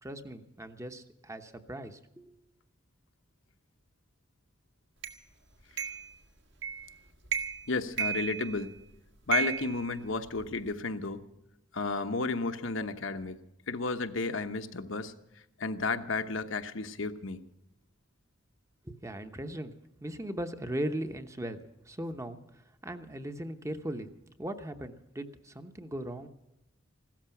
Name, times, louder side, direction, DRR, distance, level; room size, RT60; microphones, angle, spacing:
voice 1, 0.0-2.4 18.8-19.7 20.0-24.1 24.4-26.3, right 1 dB, 15° right, 8 dB, 0.9 m, -38 dB
sound 1, 5.0-5.2 5.8-6.1 6.6-6.9 7.3-7.7 8.0-8.8 9.3-10.6, right 7 dB, 60° right, 1.6 m, -33 dB
voice 2, 7.7-8.7 9.3-11.2 11.8-13.3 13.7-15.1 15.6-17.4, left 3 dB, 70° left, 8 dB, 1.0 m, -32 dB
16.5 x 13.5 x 5.9 m, 0.88 s
head